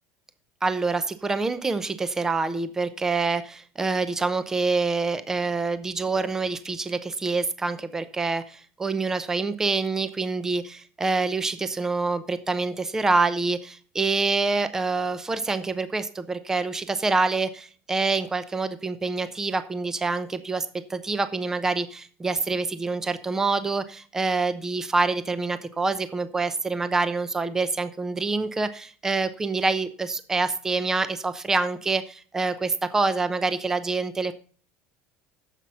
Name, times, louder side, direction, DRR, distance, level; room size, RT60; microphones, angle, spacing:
voice 1, 0.6-34.3, right 3 dB, 10° right, 12 dB, 0.7 m, -26 dB
9.8 x 7.6 x 5.5 m, 0.42 s
cardioid pair, 165°, 5 cm